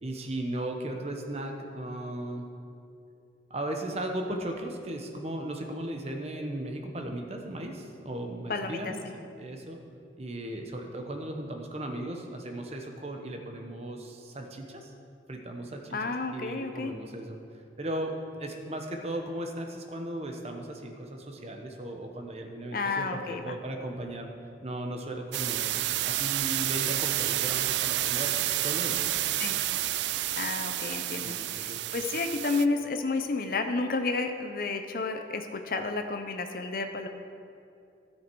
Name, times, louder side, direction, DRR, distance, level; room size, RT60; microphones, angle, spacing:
voice 1, 0.0-2.5 3.5-9.8 10.2-14.9 15.3-17.4 17.8-18.1 18.4-24.3 24.6-28.4 28.6-29.0 31.2-31.8, right 1 dB, 35° right, 3 dB, 0.9 m, -36 dB
voice 2, 8.5-8.9 15.9-16.9 22.7-23.6 29.4-29.5 30.4-37.1, left 3 dB, 50° left, 6 dB, 0.6 m, -31 dB
sound 1, 25.3-32.6, right 14 dB, 75° right, 0.3 m, -30 dB
13.0 x 7.3 x 4.6 m, 2.6 s
head